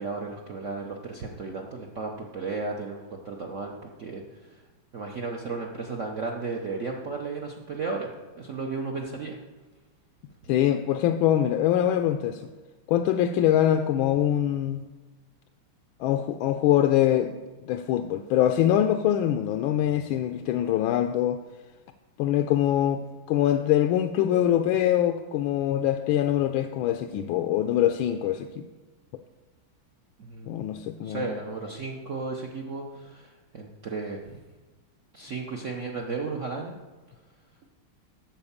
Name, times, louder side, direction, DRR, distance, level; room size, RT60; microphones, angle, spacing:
voice 1, 0.0-4.6 4.9-8.1 8.4-9.4 30.2-30.7 31.0-34.4 35.1-36.8, right 4 dB, 60° right, 0 dB, 0.7 m, -34 dB
voice 2, 10.5-12.4 12.9-14.8 16.0-17.3 17.7-21.4 22.2-28.7 30.5-31.3, left 11 dB, 75° left, 7 dB, 1.3 m, -24 dB
12.0 x 4.5 x 7.2 m, 1.3 s
omnidirectional pair, 2.4 m